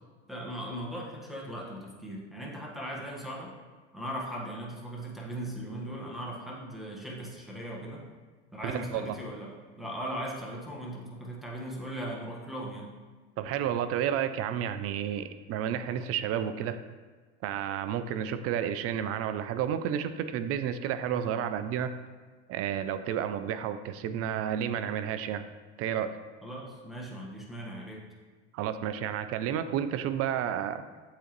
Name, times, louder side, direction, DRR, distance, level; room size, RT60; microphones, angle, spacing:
voice 1, 0.3-3.5 3.9-8.1 8.5-12.8 26.4-28.0, right 1 dB, ahead, -3 dB, 1.4 m, -38 dB
voice 2, 8.6-9.2 13.4-16.8 17.4-21.9 22.5-25.4 25.8-26.2 28.5-30.8, right 9 dB, 45° right, 11 dB, 0.4 m, -31 dB
8.0 x 3.8 x 3.1 m, 1.4 s
hypercardioid pair, 85°, 35 cm